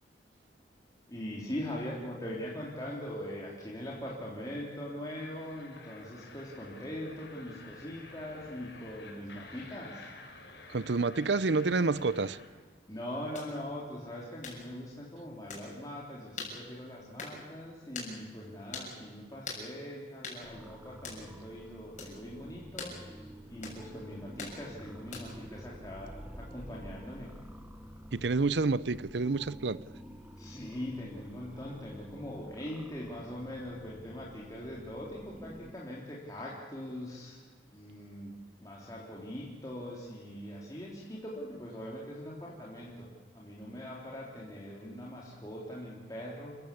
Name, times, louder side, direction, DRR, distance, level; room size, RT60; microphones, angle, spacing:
voice 1, 1.1-10.1 12.9-27.3 30.4-37.4 37.7-38.4 38.6-43.1 43.3-46.6, left 1 dB, 20° left, -4 dB, 3.4 m, -41 dB
sound 1, 4.3-12.5, left 3 dB, 80° left, 5.3 m, -51 dB
voice 2, 10.7-12.4 28.1-29.9, right 3 dB, 75° right, 18 dB, 0.7 m, -28 dB
sound 2, 13.3-13.5 14.4-14.6 15.5-15.7 16.4-16.6 17.2-17.4 17.9-18.1 18.7-18.9 19.5-19.7 20.2-20.4 21.0-21.2 22.0-22.2 22.8-23.0 23.6-23.8 24.4-24.6 25.1-25.4, left 4 dB, 45° left, 6.9 m, -41 dB
sound 3, 20.4-35.7, equal, 10° right, 1.0 m, -49 dB
28.5 x 15.0 x 8.5 m, 1.4 s
head